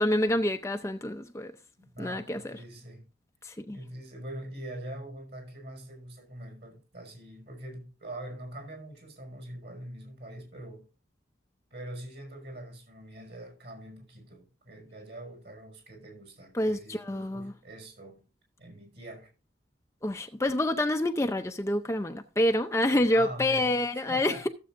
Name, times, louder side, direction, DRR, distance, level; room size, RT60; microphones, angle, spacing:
voice 1, 0.0-1.5 2.0-2.6 3.4-3.8 16.5-17.5 20.0-24.5, left 1 dB, 15° left, 0.5 m, -27 dB
voice 2, 1.8-3.1 3.7-10.8 11.7-18.2 18.6-19.3 23.1-24.5, right 1 dB, 55° right, 5.8 m, -43 dB
15.5 x 7.6 x 2.6 m
head